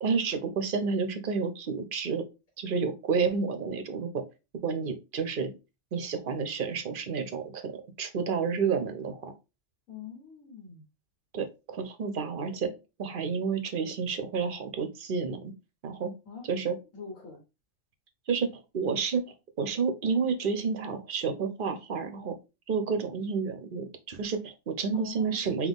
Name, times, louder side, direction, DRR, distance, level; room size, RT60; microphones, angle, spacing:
voice 1, 0.0-2.2 2.6-4.2 4.6-5.5 5.9-7.7 8.0-9.3 11.3-12.7 13.0-15.5 15.8-16.1 16.5-16.7 18.3-19.3 19.6-22.3 22.7-25.7, right 5 dB, 55° right, 8 dB, 0.7 m, -30 dB
voice 2, 9.9-10.9 16.2-16.5 16.9-17.4 24.9-25.7, left 6 dB, 90° left, 0 dB, 1.6 m, -44 dB
3.9 x 2.9 x 3.5 m, 0.27 s
omnidirectional pair, 1.3 m